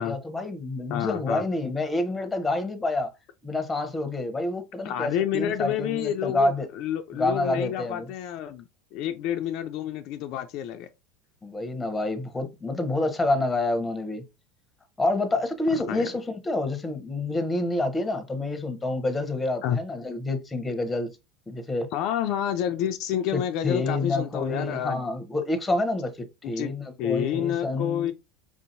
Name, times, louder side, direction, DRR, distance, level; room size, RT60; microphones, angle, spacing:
voice 1, 0.0-3.1 3.4-6.7 7.1-8.1 11.4-14.2 15.0-21.1 21.5-21.9 23.3-28.1, left 2 dB, 15° left, 0.9 m, -28 dB
voice 2, 0.9-1.4 4.8-10.9 15.8-16.1 19.6-19.8 21.9-25.0 26.6-26.7 27.0-28.1, left 10 dB, 60° left, 0.4 m, -29 dB
4.8 x 2.7 x 2.6 m
hypercardioid pair, 90°, 0 cm